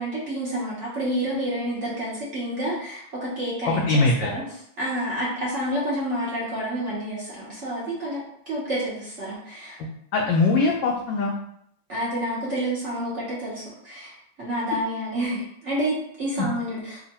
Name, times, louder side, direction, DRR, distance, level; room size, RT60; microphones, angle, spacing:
voice 1, 0.0-4.4 4.8-9.8 11.9-17.0, right 1 dB, 50° right, -6 dB, 0.8 m, -29 dB
voice 2, 3.7-4.3 10.1-11.3 16.4-16.5, left 3 dB, 75° left, -1 dB, 1.1 m, -21 dB
3.6 x 2.4 x 4.1 m, 0.70 s
omnidirectional pair, 2.4 m